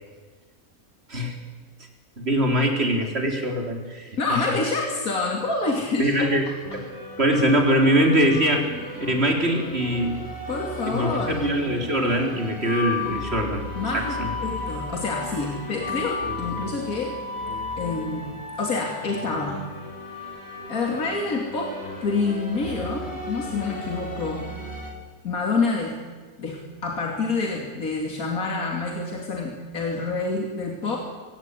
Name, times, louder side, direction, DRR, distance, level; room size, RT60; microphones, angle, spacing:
voice 1, 2.2-4.4 6.0-6.5 7.2-8.7 9.0-10.2 10.9-13.7 13.9-14.3, equal, 45° right, 3 dB, 4.2 m, -22 dB
voice 2, 4.2-6.3 8.7-8.9 10.5-11.5 13.7-17.2 17.8-18.3 18.6-19.6 20.7-21.7 22.0-24.5 25.2-26.0 26.4-31.0, left 3 dB, 75° left, 1 dB, 3.3 m, -27 dB
sound 1, 6.6-24.9, left 2 dB, 45° left, 5.3 m, -35 dB
23.0 x 18.0 x 10.0 m, 1.4 s
omnidirectional pair, 1.5 m